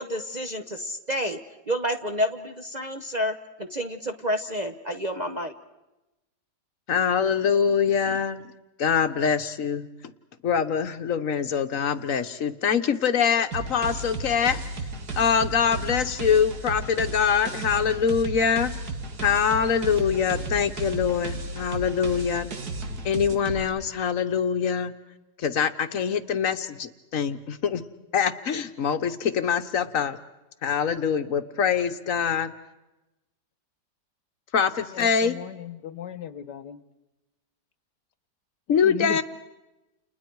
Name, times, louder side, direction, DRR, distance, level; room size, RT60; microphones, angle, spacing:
voice 1, 0.0-1.4 1.7-5.5, equal, 35° right, 5 dB, 0.8 m, -29 dB
voice 2, 6.9-8.4 8.8-9.9 10.4-14.6 15.2-18.7 19.2-22.5 23.0-24.9 25.4-27.8 28.1-30.2 30.6-32.5 34.5-35.4 38.7-39.2, left 7 dB, 55° left, 10 dB, 1.3 m, -24 dB
sound 1, 13.5-23.6, right 2 dB, 65° right, 2.3 m, -34 dB
voice 3, 34.9-36.8 38.8-39.2, left 10 dB, 80° left, 13 dB, 1.6 m, -36 dB
30.0 x 29.5 x 4.7 m, 1.0 s
omnidirectional pair, 1.8 m